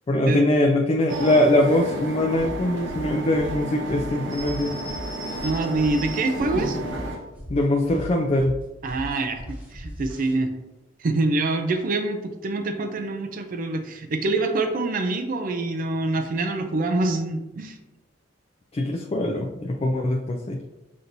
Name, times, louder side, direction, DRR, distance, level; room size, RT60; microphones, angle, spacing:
voice 1, 0.1-4.7 7.5-8.6 18.7-20.6, left 1 dB, 30° left, 1 dB, 0.3 m, -22 dB
sound 1, 1.1-7.2, right 1 dB, 80° right, 0.9 m, -32 dB
sound 2, 2.3-10.3, equal, 10° right, 0.9 m, -38 dB
voice 2, 5.4-6.8 8.8-10.5 11.0-17.8, right 2 dB, 45° right, 6 dB, 0.4 m, -25 dB
6.0 x 2.7 x 2.6 m, 1.0 s
head